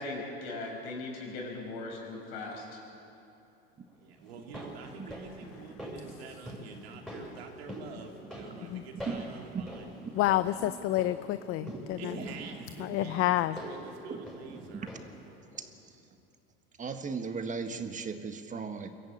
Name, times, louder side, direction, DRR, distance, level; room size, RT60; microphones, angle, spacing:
voice 1, 0.0-2.8, left 2 dB, 75° left, 0 dB, 6.0 m, -39 dB
voice 2, 3.9-9.9 10.5-10.6 12.0-14.9, right 4 dB, 90° right, 2 dB, 2.8 m, -47 dB
sound 1, 4.3-15.3 15.5-15.6, equal, ahead, 6.7 m, -45 dB
voice 3, 4.9-5.7 6.0-6.1 9.0-9.2 9.5-9.7 10.6-10.8 11.6-11.8 12.0-12.5 12.9-13.0 14.1-14.2 14.5-14.9 15.5-15.7 16.8-18.9, right 5 dB, 25° right, 7 dB, 1.5 m, -38 dB
voice 4, 10.2-12.1 12.8-13.6, left 15 dB, 45° left, 13 dB, 0.6 m, -28 dB
23.0 x 14.0 x 8.7 m, 2.8 s
supercardioid pair, 100°, 30 cm